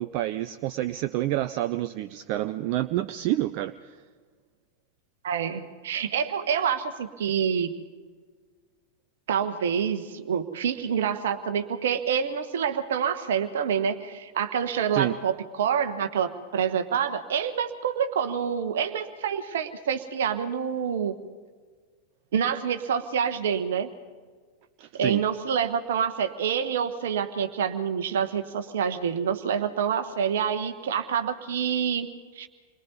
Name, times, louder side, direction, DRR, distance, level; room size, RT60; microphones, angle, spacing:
voice 1, 0.0-4.0 14.9-15.2 24.8-25.2, right 14 dB, 45° right, 12 dB, 0.5 m, -28 dB
voice 2, 5.2-7.7 9.3-21.1 22.3-23.9 25.0-32.1 32.3-32.5, right 7 dB, 60° right, 8 dB, 1.2 m, -27 dB
28.5 x 22.5 x 4.1 m, 1.5 s
figure-of-eight pair, 90°, 0 cm